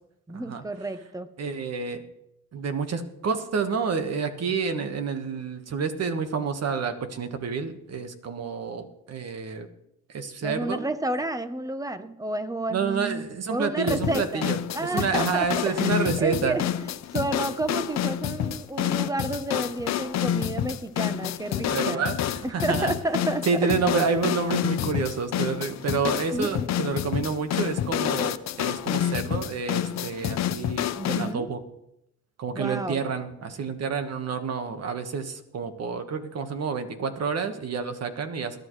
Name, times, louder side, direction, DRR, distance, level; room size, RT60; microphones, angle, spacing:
voice 1, 0.3-1.3 10.4-22.1 22.4-23.8 26.3-26.7 30.9-31.5 32.5-33.0, right 2 dB, 10° right, 0.9 m, -31 dB
voice 2, 1.4-2.0 2.5-9.7 10.1-10.9 12.7-16.6 21.7-22.2 22.5-22.9 23.5-31.6 32.4-38.6, right 5 dB, 55° right, 1.5 m, -29 dB
sound 1, 13.9-31.3, left 11 dB, 60° left, 0.7 m, -28 dB
21.5 x 10.5 x 3.2 m
cardioid pair, 90°, 30 cm